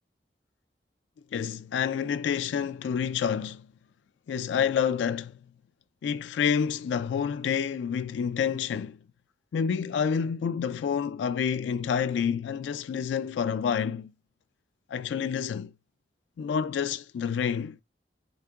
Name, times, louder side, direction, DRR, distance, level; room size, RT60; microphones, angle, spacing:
voice 1, 1.3-3.7 4.3-5.4 6.0-9.0 9.5-14.1 14.9-15.7 16.4-17.8, left 7 dB, 80° left, 0.3 m, -28 dB
4.7 x 2.8 x 3.5 m
head